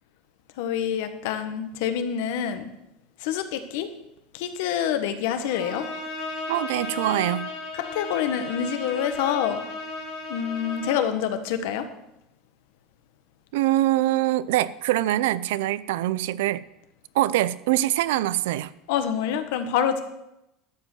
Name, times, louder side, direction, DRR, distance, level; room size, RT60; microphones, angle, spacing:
voice 1, 0.6-2.7 3.2-3.9 4.3-5.9 7.7-9.6 10.3-11.9 18.9-20.0, left 9 dB, 70° left, 8 dB, 1.2 m, -26 dB
Bowed string instrument, 5.5-11.2, left 2 dB, 50° left, 2.4 m, -35 dB
voice 2, 6.5-7.5 13.5-16.6 17.1-18.7, right 15 dB, 85° right, 18 dB, 0.4 m, -24 dB
12.0 x 5.2 x 7.7 m, 0.87 s
cardioid pair, 155°, 0 cm